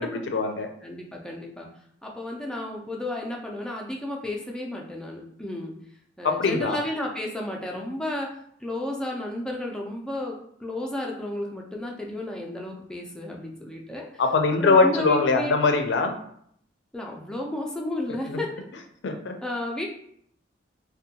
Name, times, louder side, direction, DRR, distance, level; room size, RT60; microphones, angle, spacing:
voice 1, 0.0-0.7 6.2-6.8 14.2-16.1 19.0-19.3, left 4 dB, 80° left, 5 dB, 0.4 m, -22 dB
voice 2, 0.8-1.7 2.0-5.7 6.2-8.3 8.6-14.1 14.6-15.5 16.9-18.5 19.4-19.9, left 1 dB, 5° left, -1 dB, 0.4 m, -32 dB
2.6 x 2.1 x 2.7 m, 0.67 s
head